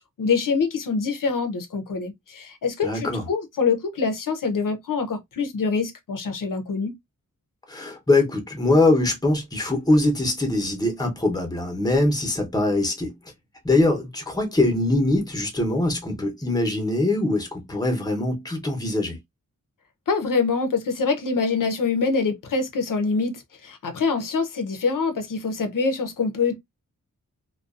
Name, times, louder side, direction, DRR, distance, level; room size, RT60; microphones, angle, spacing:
voice 1, 0.2-6.9 20.1-26.6, left 4 dB, 75° left, 0.6 m, -25 dB
voice 2, 2.8-3.2 7.7-13.2 13.6-19.2, left 2 dB, 10° left, 0.8 m, -22 dB
2.5 x 2.2 x 2.3 m
wide cardioid pair, 120°, 33 cm